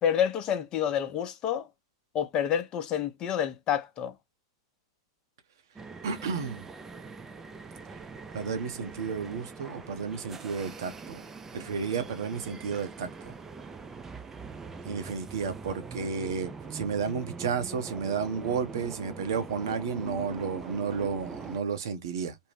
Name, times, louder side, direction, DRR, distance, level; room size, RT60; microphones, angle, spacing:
voice 1, 0.0-1.7 2.1-4.1, left 9 dB, 35° left, 0.6 m, -28 dB
sound 1, 5.8-21.6, right 4 dB, 15° right, 0.4 m, -43 dB
voice 2, 6.0-6.6 8.3-11.2 11.5-13.3 14.8-22.4, right 6 dB, 70° right, 0.8 m, -32 dB
2.6 x 2.1 x 3.2 m
hypercardioid pair, 105°, 2 cm